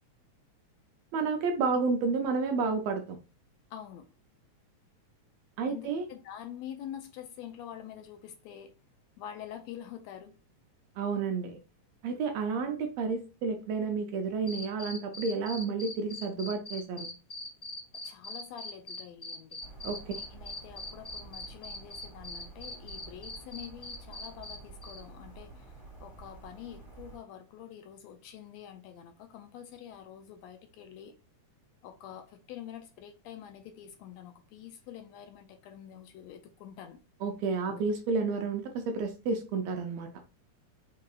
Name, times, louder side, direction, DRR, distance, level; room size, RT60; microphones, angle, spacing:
voice 1, 1.1-3.2 5.6-6.0 11.0-11.6 12.0-17.1 19.8-20.0 37.2-40.1, right 4 dB, 75° right, 1.6 m, -31 dB
voice 2, 3.7-4.1 5.6-8.8 9.2-10.4 17.9-19.6 20.1-31.1 31.8-37.0 37.7-37.8, left 10 dB, 80° left, 1.7 m, -46 dB
sound 1, 14.5-24.6 24.8-25.0, left 2 dB, 30° left, 1.0 m, -41 dB
sound 2, 19.6-27.2, right 3 dB, 10° right, 2.3 m, -50 dB
5.4 x 3.7 x 2.4 m
omnidirectional pair, 3.4 m